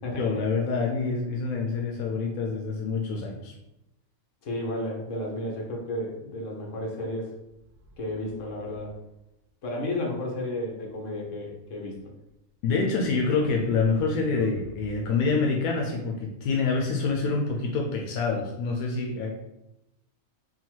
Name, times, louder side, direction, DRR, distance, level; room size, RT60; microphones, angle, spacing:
voice 1, 0.0-3.5 12.6-19.4, left 4 dB, 90° left, 0 dB, 1.1 m, -26 dB
voice 2, 4.4-7.3 8.0-8.9 9.6-12.0, left 1 dB, 65° left, -1 dB, 1.3 m, -32 dB
sound 1, 7.5-9.2 12.3-12.4 13.3-15.1, right 3 dB, 70° right, 0.9 m, -45 dB
3.7 x 2.3 x 4.5 m, 0.88 s
omnidirectional pair, 1.4 m